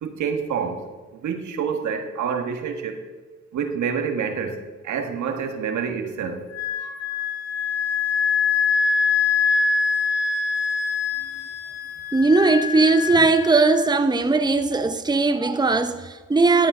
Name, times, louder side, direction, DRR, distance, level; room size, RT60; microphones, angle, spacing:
voice 1, 0.0-0.8 1.1-3.1 3.5-4.6 4.8-6.4, right 6 dB, 80° right, 1.4 m, -27 dB
Wind instrument woodwind instrument, 6.5-14.0, left 5 dB, 60° left, 1.6 m, -24 dB
voice 2, 12.1-16.7, right 3 dB, 15° right, 0.8 m, -19 dB
12.0 x 7.2 x 5.4 m
cardioid pair, 60°, 29 cm